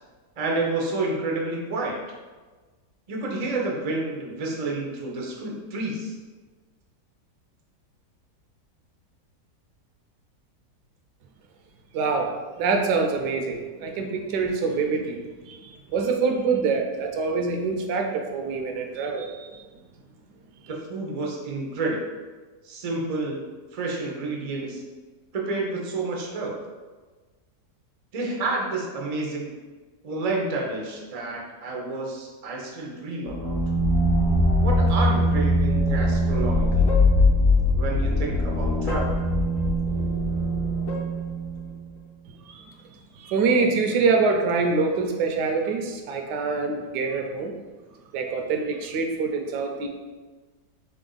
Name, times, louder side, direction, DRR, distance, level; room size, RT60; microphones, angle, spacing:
voice 1, 0.4-2.0 3.1-6.1 20.7-22.0 22.6-23.4 23.7-24.8 25.3-26.5 28.1-29.5 30.0-33.6 34.6-36.9 37.7-39.2, right 2 dB, 65° right, -1 dB, 0.3 m, -29 dB
voice 2, 11.9-12.3 12.6-15.2 15.5-19.6 42.5-42.7 43.2-47.5 48.1-49.9, right 4 dB, 80° right, 3 dB, 1.2 m, -25 dB
sound 1, 33.3-41.8, left 1 dB, 60° left, 0.9 m, -22 dB
3.8 x 3.4 x 3.8 m, 1.3 s
omnidirectional pair, 1.8 m